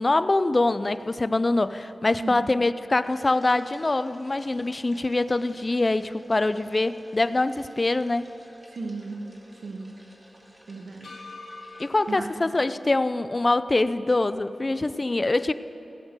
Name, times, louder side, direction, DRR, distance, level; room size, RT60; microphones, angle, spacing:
voice 1, 0.0-8.3 11.8-15.5, left 2 dB, 35° left, 14 dB, 0.4 m, -24 dB
sound 1, 2.9-7.1 7.5-7.6 11.0-13.7, left 2 dB, 85° left, 2.6 m, -50 dB
sound 2, 3.0-12.4, equal, 25° right, 2.2 m, -54 dB
voice 2, 8.7-9.2 9.5-10.0 10.7-11.2 12.1-12.3 15.1-15.3, right 3 dB, 85° right, 2 dB, 1.3 m, -36 dB
16.5 x 7.9 x 6.6 m, 2.9 s
wide cardioid pair, 80°, 0 cm